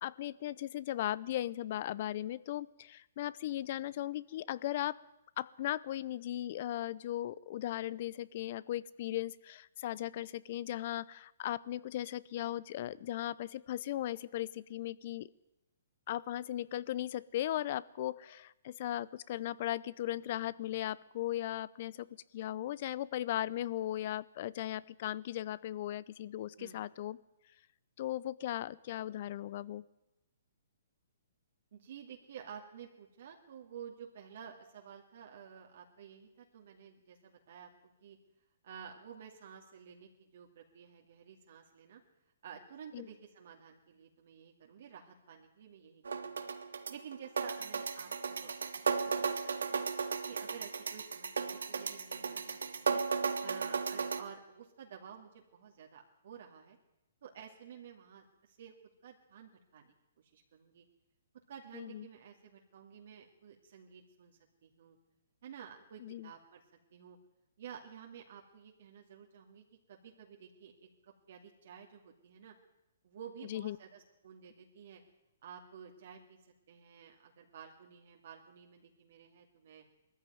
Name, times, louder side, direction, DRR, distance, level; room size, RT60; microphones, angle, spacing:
voice 1, 0.0-5.0 5.4-15.3 16.1-22.1 22.3-27.2 28.0-29.8 42.9-43.1 61.7-62.1 66.0-66.3 73.5-73.8, left 13 dB, 50° left, 21 dB, 0.7 m, -37 dB
voice 2, 31.7-38.2 38.6-42.0 42.4-46.4 46.9-49.8 50.3-53.0 53.4-56.8 57.2-58.7 59.0-59.9 60.3-60.9 61.5-65.0 65.4-66.6 66.9-67.2 67.6-72.5 73.0-75.0 75.4-79.9, right 8 dB, 60° right, 1 dB, 2.4 m, -52 dB
sound 1, 46.0-54.2, right 5 dB, 80° right, 1.6 m, -35 dB
19.5 x 14.0 x 9.4 m, 0.92 s
hypercardioid pair, 135°, 0 cm